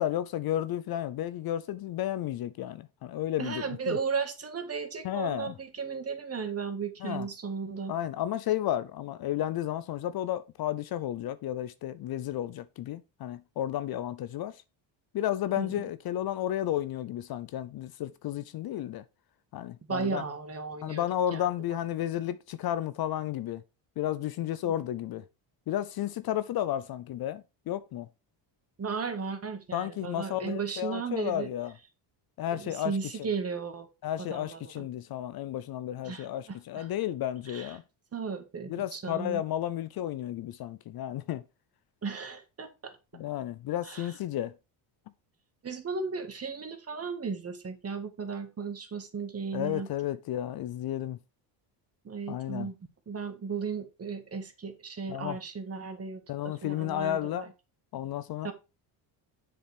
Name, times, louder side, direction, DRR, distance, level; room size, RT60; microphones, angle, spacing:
voice 1, 0.0-4.0 5.0-5.5 7.0-7.3 7.9-14.6 15.1-19.0 19.5-20.2 20.8-23.6 24.0-25.2 25.7-28.1 29.7-31.7 32.4-33.3 34.0-37.8 38.7-41.4 43.1-44.5 49.5-51.2 52.3-52.7 55.1-55.4 56.3-57.5 57.9-58.5, left 12 dB, 50° left, 0.6 m, -32 dB
voice 2, 3.4-7.9 15.6-15.8 19.9-21.0 21.3-21.5 24.6-24.7 28.8-31.5 32.5-33.9 34.2-34.8 36.0-36.9 37.5-37.8 38.1-39.4 42.0-42.9 43.8-44.1 45.6-49.9 52.0-52.7 53.1-57.5 58.4-58.5, right 5 dB, 30° right, 1.7 m, -35 dB
7.3 x 7.0 x 3.4 m
cardioid pair, 105°, 49 cm